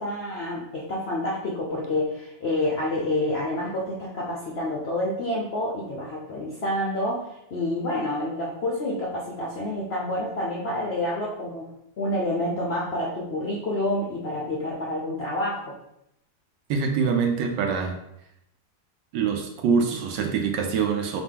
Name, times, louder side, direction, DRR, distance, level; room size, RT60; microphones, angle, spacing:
voice 1, 0.0-11.7 12.0-15.7, left 1 dB, 60° left, -4 dB, 0.6 m, -28 dB
voice 2, 16.7-18.0 19.1-21.2, right 6 dB, 80° right, 3 dB, 1.2 m, -24 dB
4.0 x 2.9 x 3.6 m, 0.81 s
omnidirectional pair, 1.9 m